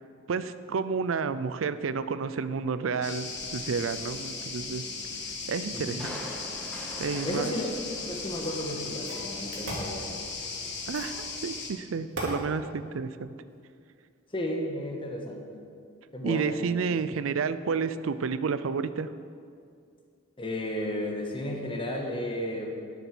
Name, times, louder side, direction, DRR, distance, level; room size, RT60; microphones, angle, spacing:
voice 1, 0.3-4.8 5.5-6.1 7.0-7.5 10.9-13.3 16.2-19.1, right 5 dB, 85° right, 13 dB, 0.5 m, -30 dB
sound 1, 3.0-11.7, left 4 dB, 60° left, 1.5 m, -37 dB
voice 2, 5.7-6.0 7.0-7.7 8.1-10.2 14.3-15.6 16.1-16.6 20.4-22.7, left 1 dB, 25° left, 1 dB, 1.4 m, -33 dB
Crushing, 6.0-9.4 9.8-9.9, equal, 5° left, 1.7 m, -43 dB
sound 2, 8.3-8.4 9.0-9.9 10.9-11.2 12.1-12.4, right 1 dB, 70° right, 2.7 m, -36 dB
10.5 x 8.1 x 6.1 m, 2.3 s
head